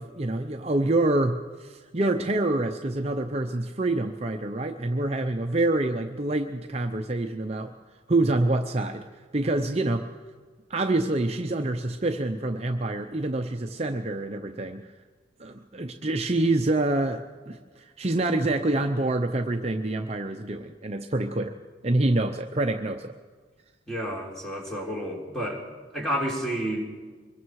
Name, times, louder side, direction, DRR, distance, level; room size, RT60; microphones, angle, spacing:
voice 1, 0.0-7.7 8.1-9.0 9.3-10.1 10.7-14.9 15.4-21.5 21.8-23.1, right 2 dB, 35° right, 4 dB, 0.7 m, -26 dB
voice 2, 23.9-25.6 25.9-26.9, equal, 5° left, -2 dB, 3.6 m, -30 dB
25.0 x 22.0 x 4.8 m, 1.5 s
head